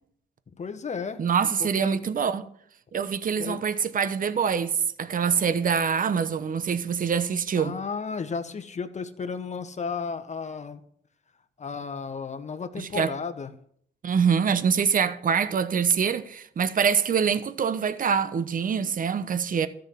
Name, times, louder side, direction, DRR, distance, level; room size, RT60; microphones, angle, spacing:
voice 1, 0.6-1.2 1.6-2.0 3.4-3.6 7.5-10.8 11.6-13.5, left 5 dB, 35° left, 1.4 m, -33 dB
voice 2, 1.2-2.4 2.9-7.8 12.8-13.1 14.0-19.7, right 7 dB, 45° right, 1.0 m, -25 dB
13.5 x 6.5 x 8.6 m
cardioid pair, 90°, 20 cm